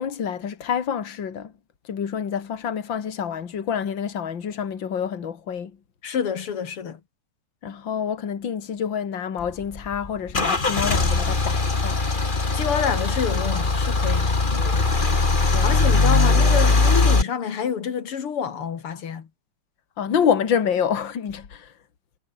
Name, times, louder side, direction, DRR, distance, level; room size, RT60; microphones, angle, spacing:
voice 1, 0.0-1.5 1.8-5.7 7.6-12.0 15.5-15.7 20.0-21.7, left 7 dB, 60° left, 2.8 m, -27 dB
voice 2, 6.0-7.0 12.5-14.3 15.6-19.3, left 7 dB, 80° left, 3.0 m, -27 dB
Car / Engine starting / Idling, 9.4-17.2, left 3 dB, 25° left, 2.1 m, -20 dB
omnidirectional pair, 2.4 m